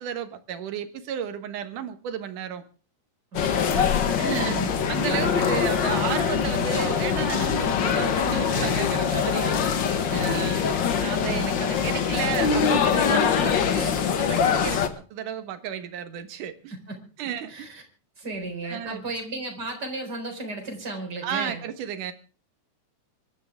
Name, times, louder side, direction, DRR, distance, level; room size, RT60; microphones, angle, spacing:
voice 1, 0.0-2.6 4.2-4.6 4.9-9.6 10.2-10.6 11.0-16.7 17.2-17.7 18.6-19.0 21.2-22.1, right 9 dB, 70° right, 9 dB, 2.8 m, -33 dB
sound 1, 3.3-14.9, left 7 dB, 65° left, 1.1 m, -23 dB
voice 2, 3.7-4.8 5.0-6.0 10.1-10.8 11.2-11.6 16.7-17.0 17.5-17.8 18.2-21.6, right 2 dB, 30° right, 2 dB, 4.8 m, -35 dB
25.0 x 12.5 x 3.6 m, 0.36 s
omnidirectional pair, 3.9 m